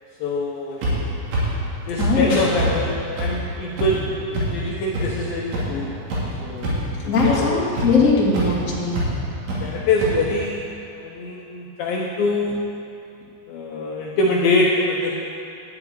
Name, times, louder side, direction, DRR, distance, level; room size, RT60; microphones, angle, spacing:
voice 1, 0.2-0.8 1.9-6.0 6.4-7.7 9.6-10.6 11.0-12.6 13.5-15.2, left 2 dB, 75° left, -3 dB, 2.2 m, -24 dB
sound 1, 0.8-0.9 1.3-1.4 2.0-2.1 2.6-2.7 3.2-3.3 3.8-3.9 4.3-4.4 4.9-5.0 5.5-5.6 6.1-6.2 6.6-6.9 7.2-7.3 7.8-7.9 8.3-8.5 8.9-9.1 9.5-9.6 10.0-10.1, right 1 dB, 80° right, 4.8 m, -23 dB
voice 2, 2.0-2.3 7.1-9.0, left 3 dB, 50° left, -5 dB, 0.9 m, -20 dB
12.5 x 6.0 x 8.9 m, 2.6 s
omnidirectional pair, 5.3 m